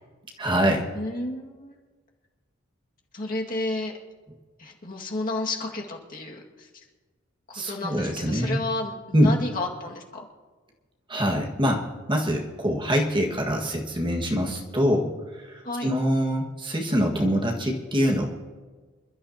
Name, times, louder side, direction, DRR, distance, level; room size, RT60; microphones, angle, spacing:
voice 1, 0.4-0.9 7.5-8.6 9.1-9.3 11.1-11.8 12.1-15.1 15.5-18.3, equal, 25° right, 0 dB, 1.7 m, -24 dB
voice 2, 0.9-1.8 3.1-3.9 4.6-6.7 7.5-10.3 15.6-15.9, left 2 dB, 40° left, -1 dB, 2.0 m, -31 dB
27.0 x 12.5 x 2.9 m, 1.4 s
head